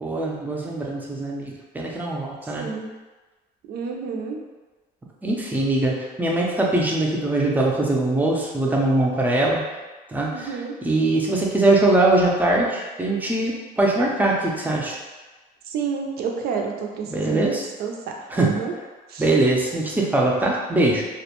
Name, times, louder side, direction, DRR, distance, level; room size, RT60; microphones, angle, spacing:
voice 1, 0.0-2.7 5.2-9.6 10.1-15.0 17.1-17.7 18.3-18.6 19.2-21.0, right 2 dB, 10° right, -2 dB, 0.5 m, -22 dB
voice 2, 2.6-2.9 3.7-4.4 10.3-10.7 15.7-17.5 17.8-18.7 19.1-19.3, right 6 dB, 65° right, 2 dB, 0.4 m, -29 dB
2.4 x 2.1 x 2.9 m, 1.2 s
cardioid pair, 110°, 17 cm